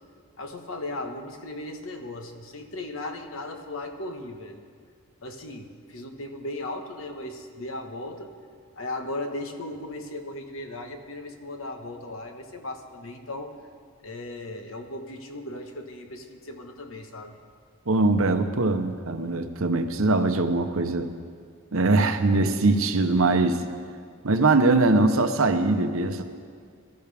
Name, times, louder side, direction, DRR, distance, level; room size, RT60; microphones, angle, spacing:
voice 1, 0.4-4.6 5.2-8.3 8.8-13.5 14.0-17.4, left 2 dB, 70° left, 4 dB, 1.3 m, -37 dB
voice 2, 17.9-21.1 21.7-23.6 24.2-26.2, right 2 dB, 70° right, 8 dB, 0.9 m, -22 dB
23.0 x 13.5 x 3.5 m, 2.1 s
head